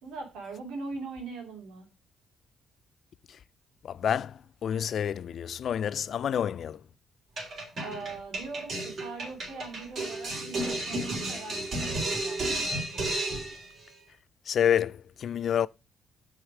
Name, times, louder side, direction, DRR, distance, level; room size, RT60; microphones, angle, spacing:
voice 1, 0.0-1.9 7.8-12.4, right 3 dB, 90° right, 2.4 m, -41 dB
voice 2, 3.8-6.8 14.5-15.7, left 9 dB, 60° left, 0.3 m, -28 dB
sound 1, 7.4-13.7, right 2 dB, 55° right, 3.4 m, -32 dB
6.3 x 5.0 x 5.9 m
cardioid pair, 90°, 0 cm